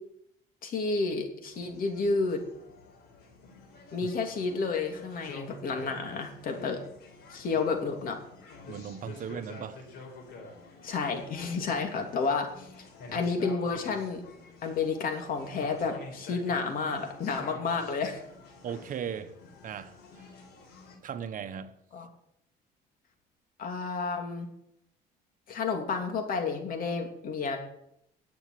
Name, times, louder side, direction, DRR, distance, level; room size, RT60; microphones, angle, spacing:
voice 1, 0.6-2.4 3.9-6.8 7.3-8.2 10.8-12.7 13.1-14.2 14.6-18.2 21.9-22.1 23.6-24.5 25.5-27.6, left 4 dB, 55° left, 3.0 m, -31 dB
sound 1, 1.5-21.0, left 3 dB, 80° left, 4.4 m, -49 dB
voice 2, 8.7-9.9 18.6-19.3 19.6-20.3 21.0-21.8, right 8 dB, 50° right, 1.1 m, -37 dB
11.0 x 7.9 x 10.0 m
cardioid pair, 110°, 17 cm